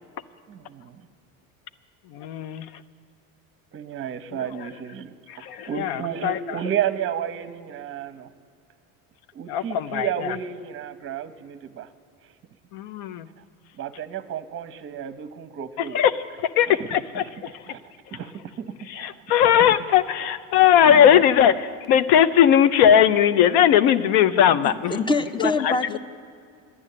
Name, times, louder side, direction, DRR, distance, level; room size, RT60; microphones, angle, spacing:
voice 1, 0.5-1.1 3.7-5.1 5.7-8.3 9.3-11.9 13.8-16.0 16.7-17.2 17.7-17.8 18.1-19.2 19.6-19.9 20.9-21.2, right 9 dB, 30° right, 12 dB, 0.7 m, -32 dB
voice 2, 2.1-2.7 5.3-6.4 9.5-10.1 12.7-13.3 15.9-16.1 16.6-17.5 18.9-25.0 25.4-26.0, left 9 dB, 65° left, 14 dB, 0.7 m, -19 dB
voice 3, 24.6-26.0, left 3 dB, 10° left, 12 dB, 0.5 m, -25 dB
11.0 x 9.7 x 8.4 m, 2.3 s
hypercardioid pair, 80°, 41 cm